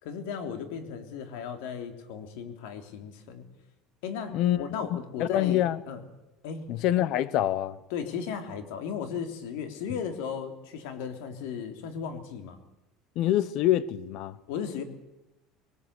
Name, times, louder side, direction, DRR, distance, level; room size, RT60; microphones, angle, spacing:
voice 1, 0.0-3.5 4.0-6.0 6.4-6.7 7.9-12.6 14.5-14.8, left 7 dB, 85° left, 3.3 m, -36 dB
voice 2, 4.3-4.6 4.9-5.8 6.7-7.8 13.2-14.4, left 12 dB, 55° left, 1.1 m, -26 dB
22.0 x 19.5 x 8.3 m
cardioid pair, 145°, 0 cm